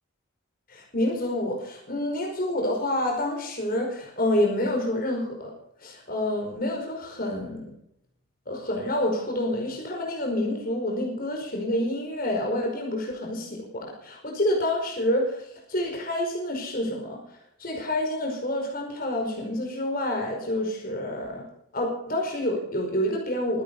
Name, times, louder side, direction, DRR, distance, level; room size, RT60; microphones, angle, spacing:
voice 1, 0.7-5.5 5.8-7.7 8.5-17.2 17.6-21.4 21.7-23.6, left 1 dB, 45° left, 1 dB, 5.1 m, -28 dB
24.5 x 10.5 x 5.5 m, 0.73 s
head